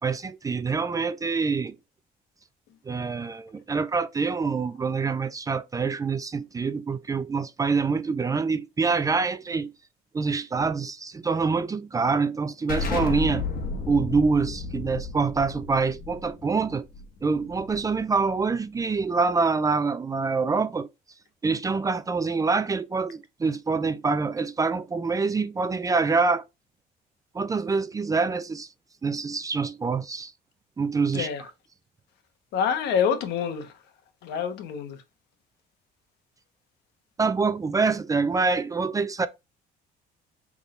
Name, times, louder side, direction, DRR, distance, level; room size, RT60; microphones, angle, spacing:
voice 1, 0.0-1.8 2.9-9.7 10.1-13.5 13.9-16.9 17.2-20.9 21.4-26.4 27.3-28.7 29.0-30.3 30.8-31.3 37.2-39.3, right 4 dB, 20° right, 0.4 m, -25 dB
Explosion, 12.7-18.1, left 4 dB, 55° left, 1.5 m, -33 dB
voice 2, 32.5-33.7 34.2-35.0, left 7 dB, 80° left, 1.1 m, -26 dB
5.9 x 3.6 x 2.5 m
cardioid pair, 110°, 17 cm